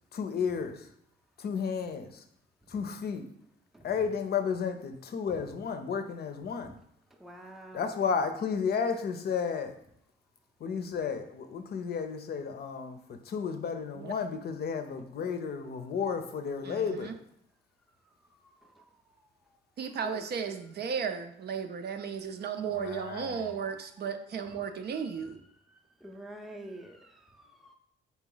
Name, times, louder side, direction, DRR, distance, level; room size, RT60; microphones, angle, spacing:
voice 1, 0.1-0.9 1.4-2.2 2.7-3.2 3.8-6.7 7.7-9.7 10.6-17.1 22.7-23.5, left 6 dB, 55° left, 8 dB, 0.6 m, -32 dB
voice 2, 7.2-7.9 18.6-18.9 20.0-20.2 25.2-25.3 25.7-27.7, right 1 dB, ahead, 2 dB, 0.5 m, -48 dB
voice 3, 16.6-17.2 19.8-25.4, right 6 dB, 55° right, 7 dB, 0.5 m, -35 dB
4.0 x 3.0 x 3.8 m, 0.71 s
cardioid pair, 90°, 20 cm